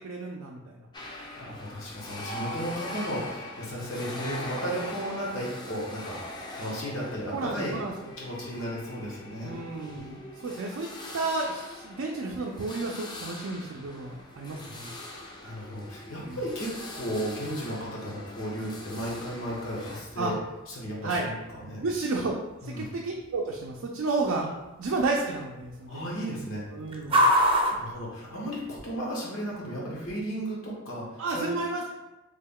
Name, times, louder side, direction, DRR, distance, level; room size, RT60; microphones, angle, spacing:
voice 1, 0.0-0.9 2.3-2.5 7.3-7.9 9.4-14.9 16.3-16.4 20.2-20.3 21.0-21.3 21.8-22.3 22.6-24.4 24.8-26.0 26.7-27.2 31.2-32.0, right 3 dB, 80° right, -1 dB, 0.4 m, -32 dB
voice 2, 0.9-6.2 6.5-7.8 8.2-9.5 15.0-20.4 20.7-21.8 22.6-22.9 25.9-26.7 27.4-31.5, equal, 85° left, -4 dB, 1.2 m, -35 dB
sound 1, 0.9-20.0, left 1 dB, 20° left, 0.4 m, -42 dB
sound 2, 14.1-28.9, equal, 25° right, 0.5 m, -33 dB
3.4 x 2.2 x 3.6 m, 1.0 s
head